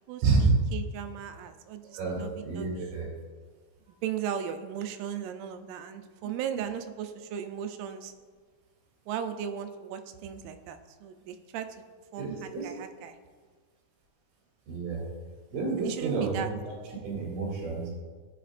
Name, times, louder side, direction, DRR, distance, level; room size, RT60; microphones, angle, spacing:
voice 1, 0.1-3.0 3.9-8.1 9.1-11.7 12.1-13.2 15.8-16.5, right 9 dB, 90° right, 8 dB, 3.4 m, -37 dB
voice 2, 2.4-3.1 12.2-12.7 14.7-15.0 15.5-16.4 17.0-17.9, right 4 dB, 65° right, -6 dB, 4.6 m, -29 dB
17.0 x 7.1 x 2.5 m, 1.5 s
omnidirectional pair, 5.8 m